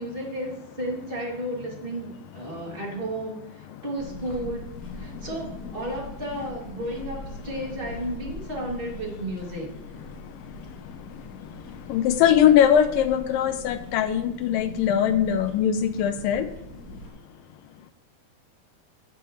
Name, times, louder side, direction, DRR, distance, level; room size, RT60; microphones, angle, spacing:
voice 1, 0.0-4.7 4.9-9.7, right 1 dB, 20° right, -2 dB, 1.9 m, -33 dB
sound 1, 4.0-17.1, left 2 dB, 30° left, 2.6 m, -41 dB
voice 2, 11.9-16.5, left 9 dB, 85° left, 9 dB, 2.0 m, -21 dB
16.0 x 8.6 x 3.2 m, 0.84 s
omnidirectional pair, 4.6 m